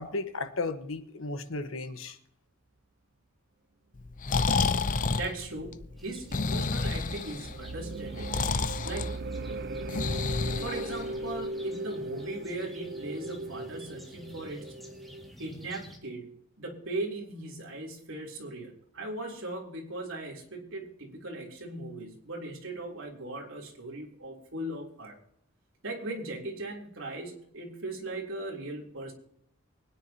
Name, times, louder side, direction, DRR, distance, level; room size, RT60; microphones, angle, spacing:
voice 1, 0.0-2.2, left 3 dB, 75° left, 1.3 m, -34 dB
Breathing, 4.0-11.4, left 4 dB, 40° left, 0.6 m, -30 dB
voice 2, 5.1-8.3 8.8-9.2 10.6-14.7 15.4-16.3 16.6-25.1 25.8-29.1, right 2 dB, 70° right, 3.5 m, -38 dB
sound 1, 5.2-15.3, right 2 dB, 50° right, 0.5 m, -39 dB
sound 2, 6.0-16.0, equal, ahead, 2.2 m, -51 dB
24.5 x 10.0 x 2.9 m
head